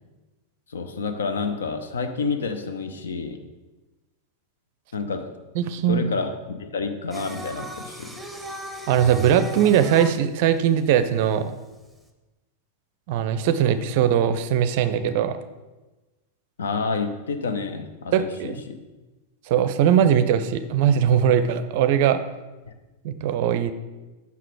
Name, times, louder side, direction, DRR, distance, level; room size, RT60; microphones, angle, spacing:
voice 1, 0.7-3.4 4.9-5.3 5.8-8.2 16.6-18.8 22.6-22.7, left 4 dB, 65° left, 8 dB, 0.6 m, -29 dB
voice 2, 5.6-6.0 8.9-11.6 13.1-15.4 18.1-18.5 19.5-22.2 23.0-23.7, right 9 dB, 50° right, 12 dB, 0.5 m, -20 dB
Singing, 7.1-12.1, equal, ahead, 0.8 m, -38 dB
5.9 x 5.8 x 4.7 m, 1.1 s
figure-of-eight pair, 90°, 0 cm